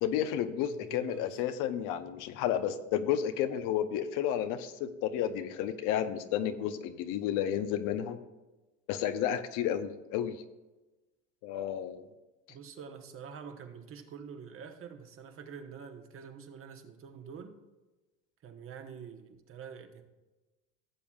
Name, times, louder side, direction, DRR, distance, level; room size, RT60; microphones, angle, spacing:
voice 1, 0.0-8.2 8.9-10.4 11.4-12.1, left 10 dB, 65° left, 10 dB, 0.8 m, -31 dB
voice 2, 0.7-1.4 12.5-17.6 18.4-20.0, right 7 dB, 40° right, 6 dB, 1.1 m, -46 dB
16.5 x 7.1 x 2.4 m, 1.1 s
supercardioid pair, 105°, 34 cm